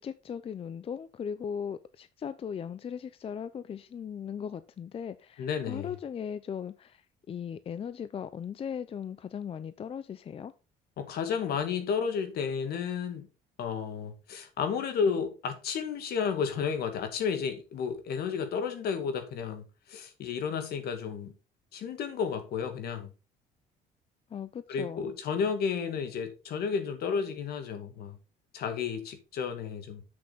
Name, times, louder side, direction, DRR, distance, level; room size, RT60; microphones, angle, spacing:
voice 1, 0.0-10.5 24.3-25.1, left 7 dB, 35° left, 0.5 m, -38 dB
voice 2, 5.4-5.9 11.0-13.3 13.6-21.3 21.7-23.1 24.7-28.2 28.5-30.0, left 6 dB, 65° left, 2.1 m, -32 dB
7.9 x 6.8 x 4.1 m
cardioid pair, 110°, 17 cm